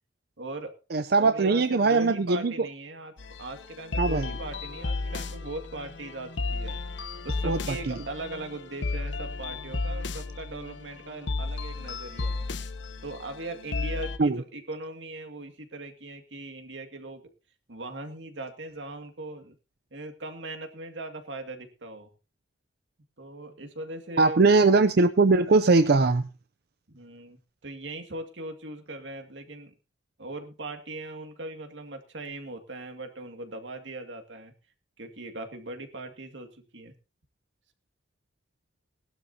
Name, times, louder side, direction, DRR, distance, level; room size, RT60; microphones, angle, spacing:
voice 1, 0.4-0.8 1.2-3.1 3.4-6.8 7.2-12.5 13.0-17.3 17.7-19.6 19.9-22.1 23.2-24.4 26.9-29.8 30.2-34.5 35.0-36.9, right 2 dB, 85° right, 5 dB, 2.3 m, -39 dB
voice 2, 0.9-2.5 4.0-4.3 7.4-7.9 14.2-14.4 24.2-26.3, right 3 dB, 60° right, 10 dB, 0.6 m, -21 dB
sound 1, 3.2-14.2, left 3 dB, 80° left, 1.0 m, -34 dB
19.5 x 12.0 x 2.8 m, 0.32 s
head